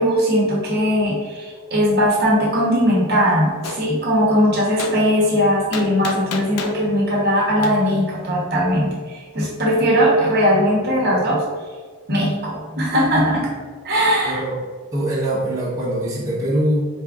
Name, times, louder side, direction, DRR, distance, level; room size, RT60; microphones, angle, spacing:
voice 1, 0.0-11.4 12.1-13.5 13.8-14.4, equal, 45° right, -4 dB, 0.9 m, -19 dB
Gunshot gunfire, 3.6-3.8 4.8-5.0 5.7-6.8 7.6-7.8, left 4 dB, 90° left, 0.5 m, -29 dB
voice 2, 14.2-14.6 14.9-16.9, right 1 dB, 15° right, -8 dB, 0.9 m, -22 dB
4.2 x 2.4 x 3.5 m, 1.5 s
head